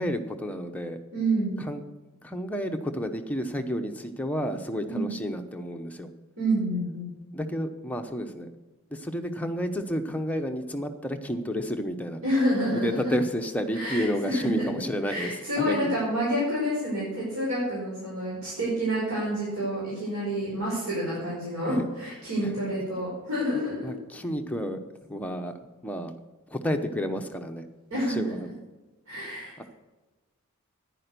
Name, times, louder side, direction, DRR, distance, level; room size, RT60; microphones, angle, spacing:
voice 1, 0.0-1.0 1.6-1.8 2.2-6.1 7.3-8.5 8.9-12.2 12.8-16.0 21.7-21.9 22.4-22.5 23.8-24.8 25.1-25.6 25.8-26.1 26.5-27.7 28.1-28.5 29.6-29.7, equal, 5° left, 4 dB, 0.8 m, -31 dB
voice 2, 1.1-1.5 4.9-5.1 6.4-7.1 12.2-12.8 13.7-14.7 15.0-23.9 27.9-28.2 29.1-29.6, equal, 70° right, -6 dB, 5.0 m, -28 dB
10.5 x 10.0 x 6.7 m, 1.2 s
head